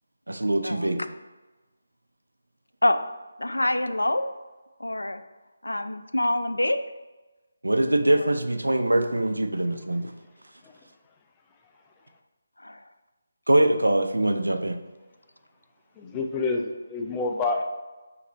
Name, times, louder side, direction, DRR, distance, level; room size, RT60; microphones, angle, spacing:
voice 1, 0.3-1.0 7.6-10.0 13.5-14.8, right 1 dB, 85° right, 6 dB, 0.4 m, -23 dB
voice 2, 3.4-4.2 4.8-5.2 5.6-6.8 8.2-8.3 12.6-12.8, left 1 dB, 85° left, 10 dB, 0.3 m, -25 dB
voice 3, 16.0-17.6, left 3 dB, 15° left, 2 dB, 0.4 m, -28 dB
5.6 x 2.6 x 3.0 m, 1.2 s
figure-of-eight pair, 155°, 0 cm